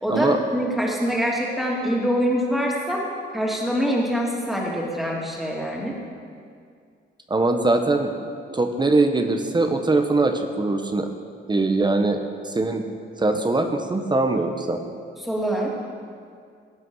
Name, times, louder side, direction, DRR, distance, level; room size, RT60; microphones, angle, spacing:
voice 1, 0.0-3.1 3.3-6.0 15.2-15.7, equal, ahead, -3 dB, 2.8 m, -24 dB
voice 2, 7.3-11.1 11.5-12.8 13.2-14.8, right 2 dB, 20° right, 5 dB, 1.0 m, -22 dB
16.5 x 8.7 x 6.4 m, 2.2 s
cardioid pair, 115°, 20 cm